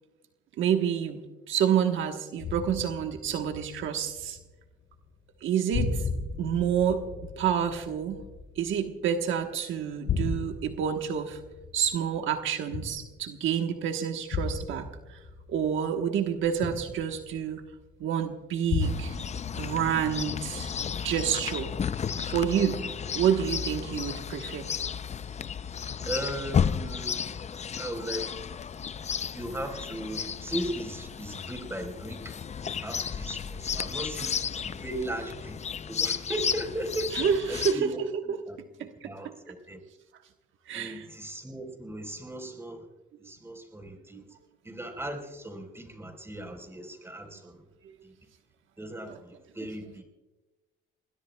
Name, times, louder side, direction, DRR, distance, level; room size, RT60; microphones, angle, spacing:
voice 1, 0.6-1.2 1.5-4.4 5.4-6.1 6.4-8.2 8.6-11.4 11.7-15.2 15.5-17.6 18.0-19.2 19.5-20.7 21.0-21.7 22.2-24.7 37.1-37.8 38.3-38.4 38.8-39.3 40.7-41.1 44.1-44.2 49.1-49.2, right 8 dB, 80° right, 5 dB, 1.2 m, -28 dB
sound 1, 2.4-4.7 4.9-5.4 5.7-9.4 9.8-13.5 14.3-17.9 18.7-20.2 20.6-21.1, left 4 dB, 70° left, 3.8 m, -35 dB
Chirp tweet, 18.8-37.7, left 7 dB, 35° left, 0.5 m, -33 dB
voice 2, 26.0-27.4 27.8-28.6 29.3-32.4 32.8-35.6 35.9-39.8 40.7-42.9 43.2-44.2 44.6-47.6 48.0-48.1 48.8-50.0, right 1 dB, 10° right, 3 dB, 4.1 m, -37 dB
27.5 x 20.5 x 2.3 m, 1.1 s
cardioid pair, 90°, 20 cm